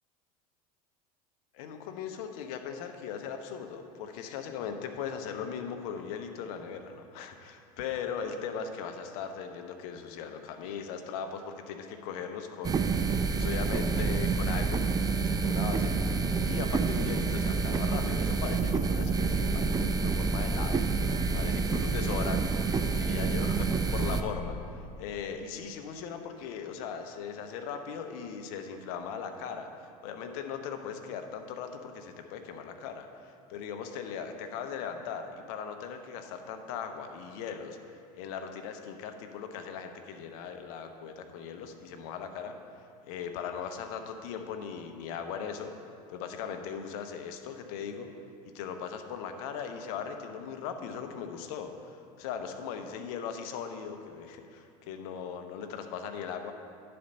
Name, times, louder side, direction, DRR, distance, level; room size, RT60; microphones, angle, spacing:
voice 1, 1.5-14.8 15.1-16.2 16.4-20.8 21.3-37.8 38.1-42.5 43.1-45.7 46.1-48.1 48.5-56.5, left 7 dB, 70° left, 6 dB, 0.8 m, -39 dB
sound 1, 12.6-24.2, right 4 dB, 20° right, 0.4 m, -28 dB
10.0 x 4.3 x 5.3 m, 2.5 s
hypercardioid pair, 90°, 20 cm